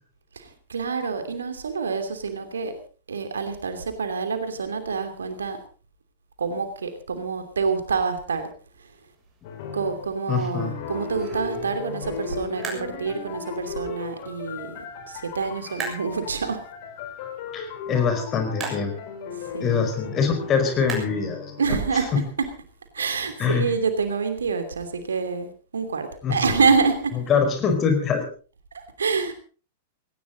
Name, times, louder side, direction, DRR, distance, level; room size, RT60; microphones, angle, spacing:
voice 1, 0.3-2.7 3.1-5.6 6.4-8.5 9.7-14.7 15.1-16.6 19.5-19.8 21.6-22.5 22.9-25.5 25.7-27.2 28.7-29.3, right 5 dB, 70° right, 8 dB, 2.9 m, -27 dB
sound 1, 8.7-21.9, right 4 dB, 25° right, 7.1 m, -42 dB
sound 2, 9.4-10.1 10.6-22.0 23.1-23.6 27.4-28.1, left 6 dB, 50° left, 4.3 m, -37 dB
voice 2, 10.3-10.7 17.5-19.0 19.6-21.8 22.1-22.2 23.4-23.7 26.2-26.5 27.3-28.2, left 6 dB, 30° left, 7 dB, 5.0 m, -24 dB
18.5 x 18.0 x 4.0 m, 0.39 s
figure-of-eight pair, 95°, 0 cm